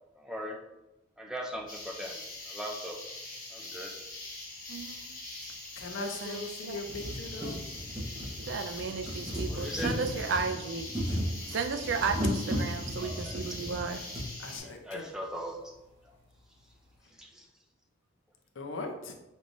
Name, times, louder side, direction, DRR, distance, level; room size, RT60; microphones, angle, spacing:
voice 1, 0.2-0.6 1.2-2.2 2.5-3.0 3.5-3.9 9.5-10.0 13.0-13.7 14.6-15.7 17.1-17.5, equal, 5° right, 0 dB, 0.4 m, -39 dB
sound 1, 1.7-14.6, left 2 dB, 40° left, 1.4 m, -43 dB
sound 2, 4.7-4.8 5.8-5.9 6.3-6.4 6.7-14.3 15.2-15.3 15.5-15.6, equal, 20° right, 1.3 m, -35 dB
voice 2, 4.7-5.1 6.0-6.8 8.4-10.9 11.5-14.0, right 5 dB, 60° right, 7 dB, 0.4 m, -34 dB
voice 3, 5.8-7.6 11.1-11.3 14.4-15.1 18.6-19.1, left 2 dB, 70° left, 4 dB, 0.6 m, -40 dB
5.2 x 3.1 x 2.6 m, 0.94 s
head